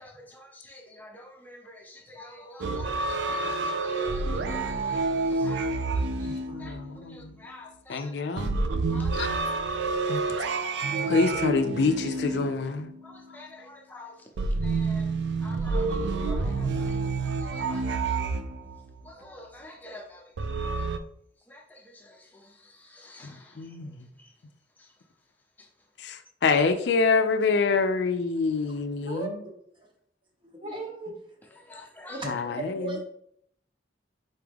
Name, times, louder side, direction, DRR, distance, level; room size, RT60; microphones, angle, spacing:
voice 1, 0.0-8.2 8.9-10.3 13.0-14.3 14.6-18.1 19.0-20.9 21.4-24.4 24.8-25.1 25.6-26.2 31.5-32.2, left 2 dB, 10° left, 0.7 m, -49 dB
sound 1, 2.6-7.2 8.4-13.1 14.4-19.0 20.4-21.0, right 3 dB, 75° right, 0.4 m, -28 dB
voice 2, 6.5-7.3 7.9-8.6 9.2-9.3 10.1-10.2 11.1-12.9 23.2-23.9 26.0-29.3 32.3-33.0, left 4 dB, 70° left, 0.4 m, -26 dB
voice 3, 28.6-29.3 29.8-29.9 30.4-31.1 32.1-33.0, right 2 dB, 25° right, 0.9 m, -37 dB
4.2 x 3.4 x 3.4 m
head